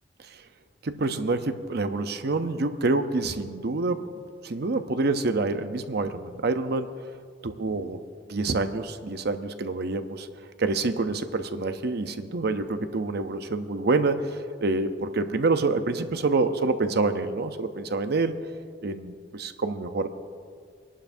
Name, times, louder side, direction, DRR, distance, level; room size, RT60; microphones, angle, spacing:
voice 1, 0.8-4.1 4.4-6.9 7.4-8.0 8.3-10.3 10.6-18.4 18.8-20.1, right 3 dB, 60° right, 9 dB, 0.7 m, -27 dB
25.0 x 11.5 x 2.7 m, 2.1 s
head